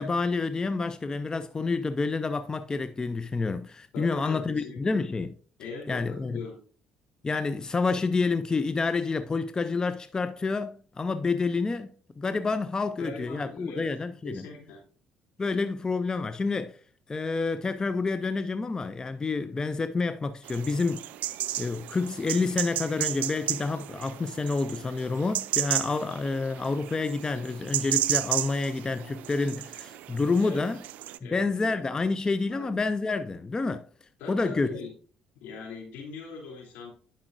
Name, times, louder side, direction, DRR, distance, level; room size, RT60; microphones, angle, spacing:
voice 1, 0.0-5.3 5.9-6.4 7.2-11.9 12.2-14.5 15.4-16.8 17.1-21.1 21.6-30.8 31.2-33.8 34.3-34.7, left 3 dB, 25° left, 0.5 m, -28 dB
voice 2, 3.9-5.0 5.6-6.6 13.0-13.9 14.2-14.8 30.4-30.6 31.2-31.7 32.5-32.8 34.2-34.9 35.3-36.9, left 4 dB, 80° left, 3.0 m, -41 dB
sound 1, 20.5-31.2, right 14 dB, 75° right, 0.4 m, -33 dB
10.5 x 5.5 x 2.5 m
supercardioid pair, 70°, 3 cm